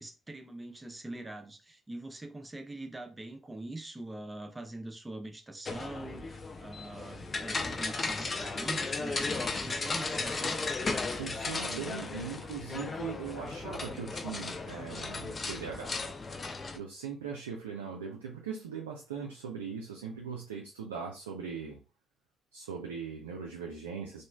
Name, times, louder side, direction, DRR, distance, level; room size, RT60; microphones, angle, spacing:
voice 1, 0.0-10.6, right 2 dB, 20° right, 0.6 m, -43 dB
sound 1, 5.7-16.8, left 3 dB, 40° left, 0.4 m, -35 dB
voice 2, 11.1-15.9 16.7-21.8 22.5-24.2, right 6 dB, 80° right, 0.3 m, -40 dB
3.0 x 2.3 x 2.3 m
figure-of-eight pair, 40°, 0 cm